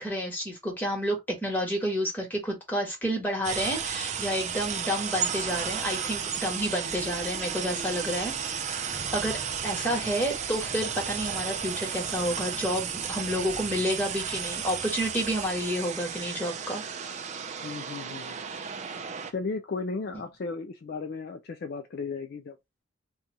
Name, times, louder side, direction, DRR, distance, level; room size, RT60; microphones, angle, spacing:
voice 1, 0.0-8.9 9.1-16.8, equal, 10° left, 1.3 m, -30 dB
sound 1, 3.4-19.3, right 7 dB, 35° right, 0.4 m, -33 dB
voice 2, 17.6-18.4 19.3-22.6, left 4 dB, 50° left, 0.4 m, -35 dB
3.0 x 2.3 x 3.9 m
head